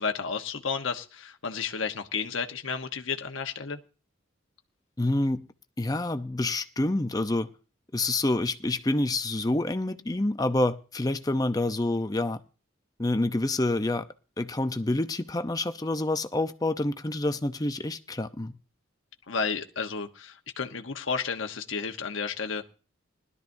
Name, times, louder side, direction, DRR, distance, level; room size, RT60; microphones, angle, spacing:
voice 1, 0.0-3.8 19.3-22.6, left 5 dB, 75° left, 1.2 m, -32 dB
voice 2, 5.0-5.4 5.8-7.5 7.9-12.4 13.0-14.0 14.4-18.5, left 2 dB, 20° left, 0.7 m, -27 dB
20.0 x 12.5 x 2.7 m
head